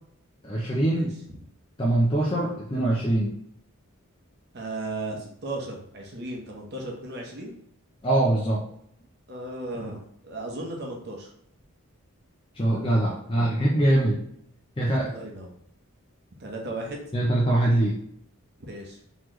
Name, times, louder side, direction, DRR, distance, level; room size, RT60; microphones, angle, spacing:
voice 1, 0.4-1.2 1.8-3.4 8.0-8.7 12.5-14.2 14.8-15.1 17.1-18.0, right 1 dB, 25° left, -5 dB, 0.6 m, -23 dB
voice 2, 4.5-7.6 9.3-11.3 14.9-15.6 16.4-17.0 18.6-19.0, right 2 dB, 50° right, 0 dB, 0.9 m, -35 dB
4.0 x 3.1 x 3.1 m, 0.70 s
head